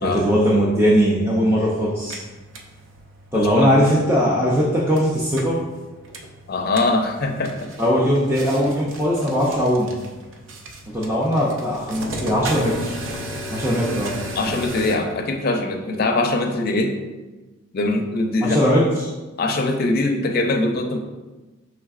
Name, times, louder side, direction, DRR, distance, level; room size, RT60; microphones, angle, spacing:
voice 1, 0.0-2.2 3.3-5.6 7.8-9.9 10.9-12.9 13.5-14.2 18.4-19.1, equal, 10° right, -6 dB, 0.5 m, -19 dB
sound 1, 1.9-15.0, right 1 dB, 65° right, 0.5 m, -36 dB
voice 2, 3.3-3.9 6.5-7.7 14.4-16.9 17.7-18.6 19.4-21.0, left 2 dB, 45° left, 4 dB, 0.4 m, -22 dB
5.5 x 3.4 x 2.4 m, 1.2 s
head